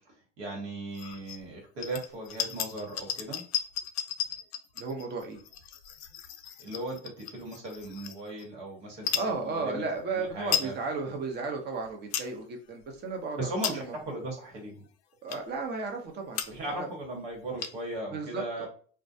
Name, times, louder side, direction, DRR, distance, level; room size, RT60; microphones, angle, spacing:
voice 1, 0.4-3.4 6.6-9.8 10.1-10.8 13.4-14.8 16.5-18.7, right 1 dB, 75° right, -2 dB, 1.3 m, -37 dB
sound 1, 0.9-1.4 1.8-8.5 9.0-9.3 10.0-10.1 10.3-10.7 11.2-11.3 11.8-12.3 12.8-13.0 13.4-14.0 14.6-14.7 15.3-15.6 16.1-16.2 16.3-16.8 17.0-17.1 17.3-18.0, left 9 dB, 80° left, 0.4 m, -35 dB
voice 2, 4.8-5.4 9.1-14.0 15.2-16.9 18.1-18.7, right 4 dB, 35° right, 3 dB, 0.8 m, -34 dB
2.2 x 2.2 x 2.7 m, 0.43 s
hypercardioid pair, 90°, 31 cm